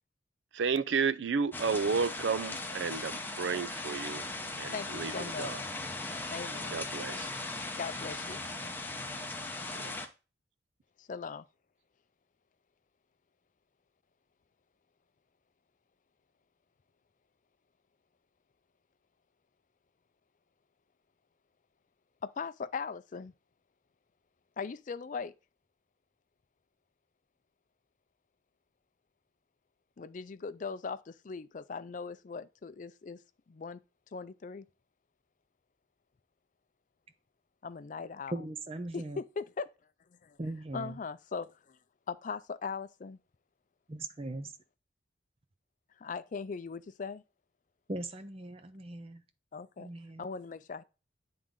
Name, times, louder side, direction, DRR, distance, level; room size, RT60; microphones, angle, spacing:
voice 1, 0.5-4.3 4.6-5.6 6.7-7.3 9.7-10.0, right 5 dB, 70° right, 0.5 m, -32 dB
sound 1, 1.5-10.1, left 2 dB, 10° left, 0.7 m, -38 dB
voice 2, 4.7-5.5 6.3-6.8 7.8-8.4 11.0-11.4 22.2-23.3 24.6-25.3 30.0-33.2 33.5-33.8 34.1-34.7 37.6-38.3 38.9-39.7 40.2-40.4 40.7-41.8 42.1-43.2 46.0-47.2 49.5-49.9 50.2-50.8, left 5 dB, 40° left, 0.4 m, -39 dB
voice 3, 38.3-39.2 40.4-41.0 43.9-44.5 47.9-49.2 49.8-50.3, right 2 dB, 30° right, 0.7 m, -39 dB
8.8 x 3.8 x 3.7 m
head